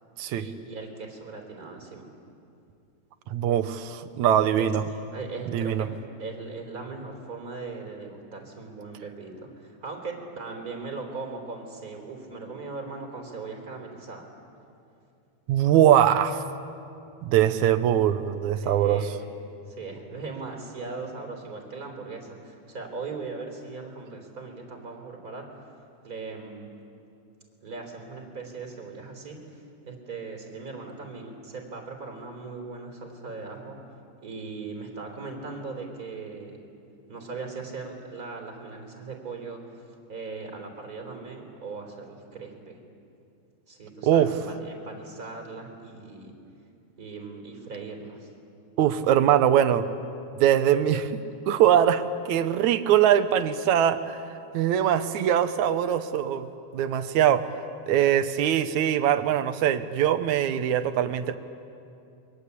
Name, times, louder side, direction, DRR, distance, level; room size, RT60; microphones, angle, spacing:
voice 1, 0.3-2.1 4.4-5.9 6.2-14.3 18.6-19.2 19.7-25.5 26.0-26.7 27.6-33.8 34.2-36.6 37.1-42.8 43.7-46.3 47.0-48.3, right 4 dB, 30° right, 2 dB, 4.0 m, -39 dB
voice 2, 3.3-4.9 5.5-5.9 15.5-16.4 17.2-19.0 44.0-44.3 48.8-49.9 50.3-54.2 54.5-56.5 56.7-57.5 57.9-61.4, right 10 dB, 75° right, 11 dB, 2.3 m, -22 dB
29.0 x 23.5 x 8.4 m, 2.6 s
omnidirectional pair, 3.5 m